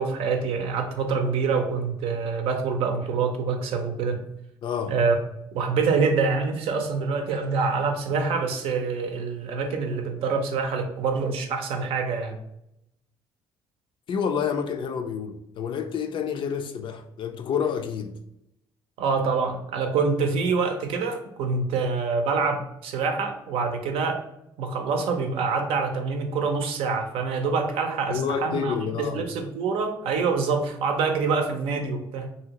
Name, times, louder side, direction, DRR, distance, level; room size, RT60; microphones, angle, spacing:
voice 1, 0.0-4.2 4.9-5.2 5.5-12.4 19.0-24.2 24.6-32.3, right 4 dB, 75° right, 0.6 m, -26 dB
voice 2, 4.6-4.9 14.1-18.1 28.1-29.3, left 7 dB, 55° left, 0.4 m, -28 dB
2.7 x 2.7 x 2.9 m
supercardioid pair, 65°, 10 cm